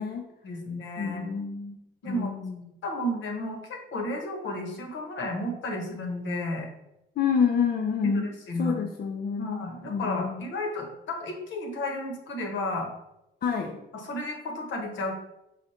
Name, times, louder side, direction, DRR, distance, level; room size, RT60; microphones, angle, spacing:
voice 1, 0.4-1.2 2.0-2.3 2.8-6.7 8.0-8.8 9.4-12.9 13.9-15.2, left 1 dB, 70° left, 2 dB, 1.1 m, -32 dB
voice 2, 1.0-1.8 2.1-2.6 7.2-8.3 8.6-10.5 13.4-13.8, left 6 dB, 50° left, 3 dB, 0.5 m, -28 dB
5.1 x 2.4 x 4.3 m, 0.88 s
cardioid pair, 90°, 20 cm